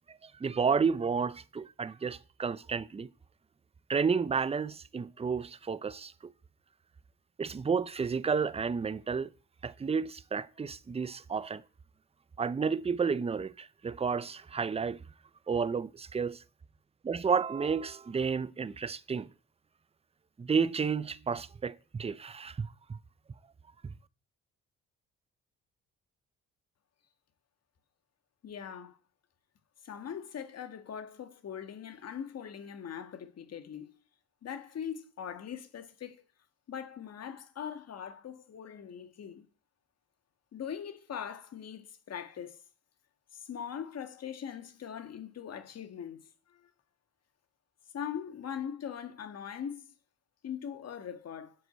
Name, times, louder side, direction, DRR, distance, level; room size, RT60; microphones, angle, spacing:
voice 1, 0.1-3.1 3.9-6.1 7.4-9.3 9.6-11.6 12.4-15.0 15.5-16.4 17.0-19.3 20.4-23.0 23.8-23.9, right 5 dB, 20° right, 0.6 m, -31 dB
voice 2, 28.4-29.0 29.8-34.0 34.4-36.2 36.7-39.4 40.5-42.6 43.3-46.6 47.9-49.9 50.4-51.5, left 8 dB, 55° left, 1.6 m, -41 dB
10.5 x 4.8 x 8.0 m
cardioid pair, 90°, 30 cm